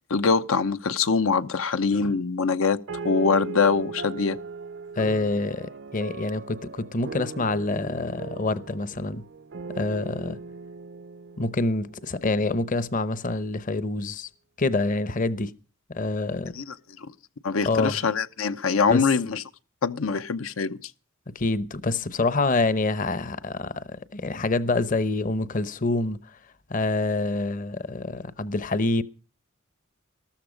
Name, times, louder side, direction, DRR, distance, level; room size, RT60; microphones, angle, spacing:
voice 1, 0.1-2.8 3.0-4.4 16.6-16.7 17.0-17.1 17.4-19.4 19.8-20.8, left 5 dB, 85° left, 0.8 m, -23 dB
sound 1, 2.9-12.6, right 4 dB, 60° right, 0.6 m, -39 dB
voice 2, 5.0-9.2 9.7-10.4 11.4-14.3 14.6-15.5 15.9-16.5 17.6-18.0 18.9-19.1 21.3-26.4 26.7-29.0, left 2 dB, 40° left, 0.8 m, -26 dB
13.5 x 13.5 x 5.1 m
head